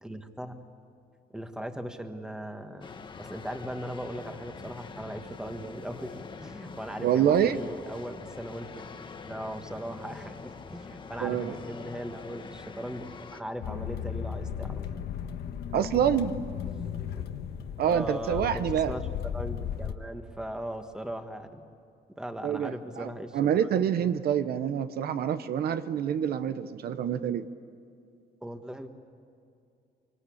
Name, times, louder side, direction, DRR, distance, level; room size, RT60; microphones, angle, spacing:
voice 1, 0.0-0.6 1.3-8.8 9.1-14.9 17.9-21.7 22.2-23.4 23.9-24.3 28.4-28.9, right 1 dB, 5° right, 6 dB, 1.4 m, -39 dB
sound 1, 2.8-13.4, left 5 dB, 30° left, 1.2 m, -44 dB
voice 2, 7.0-7.6 11.2-11.5 15.7-16.4 17.8-19.0 22.4-27.5, right 9 dB, 65° right, 11 dB, 0.9 m, -27 dB
sound 2, 13.6-20.0, left 8 dB, 75° left, 1.4 m, -35 dB
26.0 x 24.5 x 8.7 m, 2.5 s
cardioid pair, 165°, 17 cm